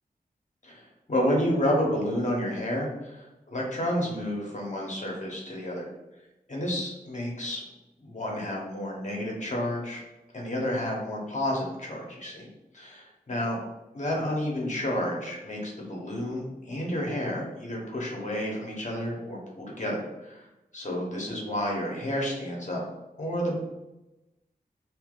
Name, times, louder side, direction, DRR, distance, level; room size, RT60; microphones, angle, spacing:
voice 1, 0.6-5.9 6.5-7.6 8.0-10.0 10.3-12.5 12.7-13.6 13.9-20.5 20.7-22.8 23.2-23.6, equal, 50° left, -2 dB, 1.1 m, -30 dB
2.9 x 2.7 x 3.8 m, 0.99 s
wide cardioid pair, 75°, 16 cm